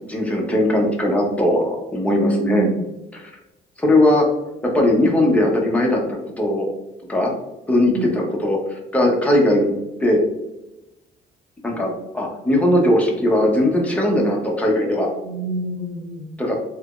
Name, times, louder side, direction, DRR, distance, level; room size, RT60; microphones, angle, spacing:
voice 1, 0.1-2.7 3.1-3.3 3.8-4.3 4.6-6.7 7.1-7.3 7.7-9.7 10.0-10.2 11.6-15.1 16.4-16.6, left 1 dB, 10° left, -1 dB, 0.8 m, -19 dB
voice 2, 2.1-2.8 7.9-8.1 15.2-16.3, right 1 dB, 65° right, 0 dB, 0.7 m, -25 dB
3.2 x 3.0 x 2.4 m, 0.94 s
cardioid pair, 110°, 17 cm